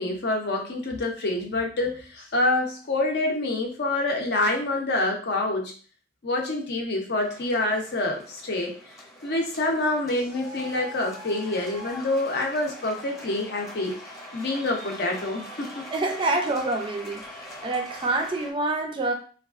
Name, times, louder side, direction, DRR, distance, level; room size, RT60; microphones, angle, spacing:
voice 1, 0.0-5.7 6.2-8.7 9.2-13.9 14.3-15.9, left 2 dB, 65° left, 1 dB, 0.6 m, -27 dB
sound 1, 7.2-18.5, equal, 20° left, 0.8 m, -42 dB
voice 2, 15.9-17.2 17.6-19.1, right 2 dB, 30° right, 4 dB, 0.4 m, -26 dB
3.3 x 2.3 x 2.3 m, 0.40 s
head